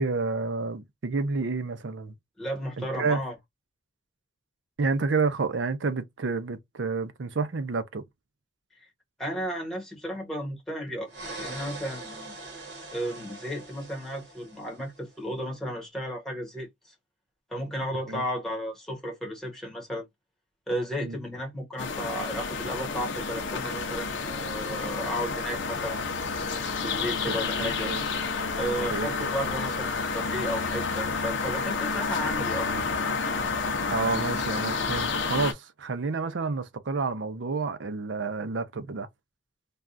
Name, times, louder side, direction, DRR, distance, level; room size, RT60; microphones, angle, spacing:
voice 1, 0.0-2.1 2.8-3.2 4.8-8.0 18.1-18.2 21.0-21.2 27.2-28.0 28.6-29.3 33.9-39.1, right 4 dB, 80° right, 0.6 m, -30 dB
voice 2, 2.4-3.3 9.2-11.1 11.4-12.3 12.9-16.9 17.5-20.1 20.7-26.0 26.8-27.9 28.6-32.7, equal, 5° left, 1.1 m, -34 dB
sound 1, 11.1-15.0, right 2 dB, 60° right, 1.6 m, -42 dB
sound 2, 21.8-35.5, left 4 dB, 75° left, 0.6 m, -30 dB
3.4 x 2.3 x 2.5 m
head